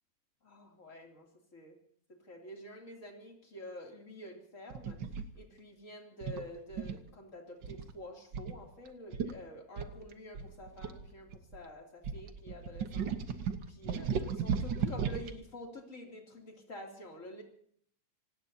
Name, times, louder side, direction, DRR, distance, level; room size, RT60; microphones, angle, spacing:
voice 1, 0.4-1.3 1.5-1.7 2.3-5.0 5.3-17.4, left 1 dB, 25° left, 1 dB, 3.0 m, -48 dB
sound 1, 4.7-5.3 6.2-7.1 7.6-7.9 8.3-8.5 8.9-9.0 9.1-9.3 9.8-11.6 12.0-15.3, right 6 dB, 80° right, 1.0 m, -35 dB
27.0 x 18.5 x 2.8 m, 0.64 s
omnidirectional pair, 3.6 m